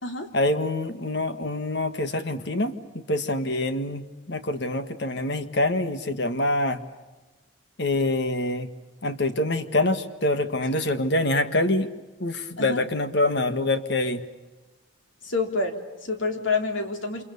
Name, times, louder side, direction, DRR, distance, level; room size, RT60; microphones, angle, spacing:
voice 1, 0.3-2.7 3.1-4.0 4.3-6.8 7.8-8.7 9.0-11.9 12.2-14.2, left 2 dB, 55° left, 10 dB, 1.7 m, -25 dB
voice 2, 15.2-17.2, left 3 dB, 70° left, 5 dB, 3.4 m, -28 dB
29.0 x 27.5 x 7.0 m, 1.2 s
head